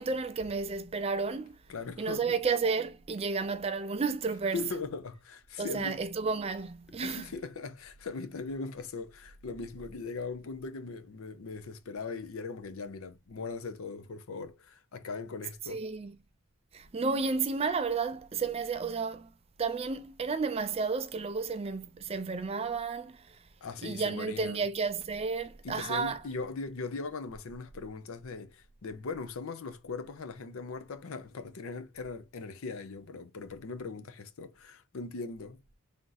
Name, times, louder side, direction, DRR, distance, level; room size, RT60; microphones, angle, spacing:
voice 1, 0.0-1.6 2.0-4.6 5.6-7.3 15.7-16.1 16.7-19.3 19.6-23.4 23.8-26.2, right 4 dB, 25° right, 0.4 m, -32 dB
voice 2, 1.7-2.4 4.5-6.0 7.0-15.8 23.6-24.7 25.6-35.6, left 4 dB, 65° left, 0.5 m, -40 dB
3.4 x 2.6 x 4.0 m
head